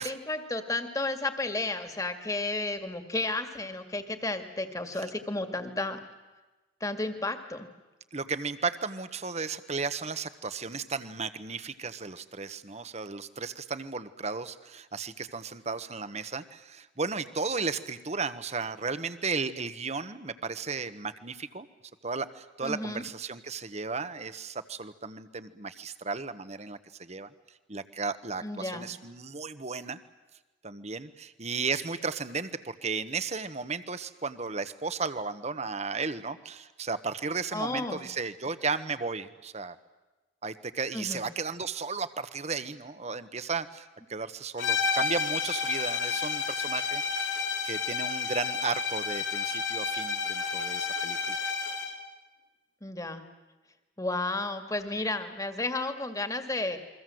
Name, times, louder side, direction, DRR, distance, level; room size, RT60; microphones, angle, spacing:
voice 1, 0.0-6.0 6.8-7.7 22.6-23.0 28.4-28.9 37.5-38.0 40.9-41.3 52.8-53.2 54.0-56.8, left 2 dB, 20° left, 7 dB, 2.1 m, -32 dB
voice 2, 8.1-21.7 22.0-27.3 27.7-30.0 30.6-39.8 40.4-47.3 47.6-51.4, right 4 dB, 35° right, 12 dB, 1.2 m, -34 dB
sound 1, 44.6-52.0, left 5 dB, 75° left, 4.4 m, -30 dB
29.5 x 23.0 x 7.8 m, 1.1 s
head